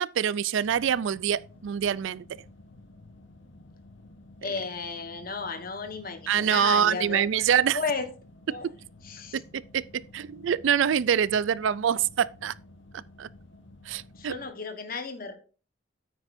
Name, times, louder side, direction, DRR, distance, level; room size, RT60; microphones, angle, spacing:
voice 1, 0.0-2.3 6.3-7.8 8.5-8.7 9.3-12.5 13.2-13.3 13.9-14.3, right 8 dB, 70° right, 0.3 m, -25 dB
sound 1, 0.6-14.5, left 2 dB, 65° left, 1.1 m, -52 dB
voice 2, 4.4-7.4 7.7-8.1 8.5-8.7 9.0-9.4 14.2-15.3, left 4 dB, 45° left, 1.3 m, -34 dB
9.1 x 8.8 x 2.6 m
head